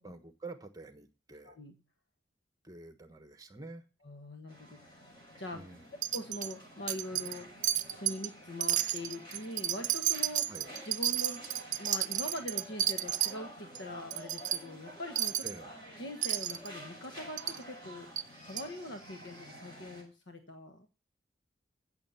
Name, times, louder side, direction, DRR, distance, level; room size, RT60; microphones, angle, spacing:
voice 1, 0.0-1.6 2.6-3.8 5.5-5.9 10.5-10.7 15.4-15.7, right 3 dB, 20° right, 9 dB, 1.2 m, -48 dB
voice 2, 4.0-5.1 5.4-5.6 6.1-7.7 8.0-10.5 10.9-11.4 11.8-15.4 16.0-18.1 18.4-21.0, left 1 dB, 80° left, 6 dB, 1.4 m, -43 dB
sound 1, 4.5-20.0, equal, 25° left, 6.9 m, -50 dB
Wind chime, 6.0-6.5 6.9-7.4 7.6-8.3 8.6-13.3 13.7-13.8 14.1-14.6 15.2-15.6 16.2-16.7 17.4-17.6 18.2-18.3 18.6-18.7, right 12 dB, 40° right, 0.7 m, -32 dB
15.5 x 6.7 x 5.7 m, 0.34 s
head